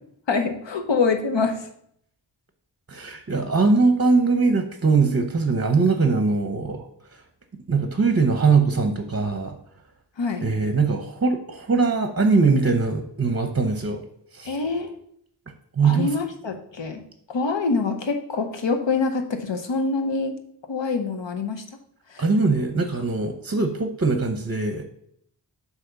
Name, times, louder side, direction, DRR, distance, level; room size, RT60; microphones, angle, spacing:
voice 1, 0.3-1.6 10.2-10.4 14.5-14.9 15.8-17.0 17.3-20.3 20.7-21.6 22.1-22.2, left 4 dB, 75° left, 6 dB, 0.9 m, -25 dB
voice 2, 2.9-6.8 7.7-9.6 10.4-14.0 14.3-14.6 15.8-16.1 22.2-24.8, right 4 dB, 30° right, 5 dB, 0.7 m, -21 dB
7.7 x 2.9 x 5.7 m, 0.68 s
wide cardioid pair, 65°, 44 cm